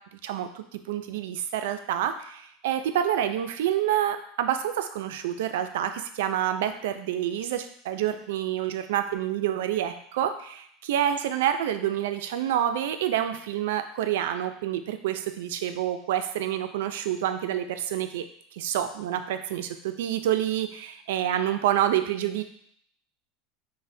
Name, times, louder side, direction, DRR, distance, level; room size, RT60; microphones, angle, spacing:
voice 1, 0.1-18.2 18.5-22.4, right 11 dB, 85° right, 9 dB, 0.4 m, -28 dB
6.1 x 2.1 x 2.6 m, 0.66 s
supercardioid pair, 150°, 0 cm